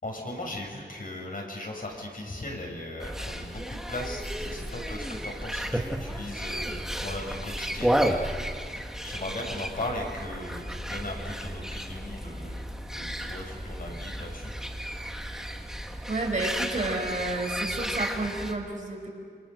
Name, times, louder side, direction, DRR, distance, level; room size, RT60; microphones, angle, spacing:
voice 1, 0.0-8.4 8.7-14.5, left 1 dB, 55° left, 0 dB, 6.0 m, -38 dB
sound 1, 3.0-18.5, equal, 5° right, 1.9 m, -33 dB
voice 2, 16.1-19.1, right 2 dB, 45° right, 0 dB, 5.5 m, -30 dB
27.5 x 25.0 x 6.6 m, 2.1 s
wide cardioid pair, 95°, 18 cm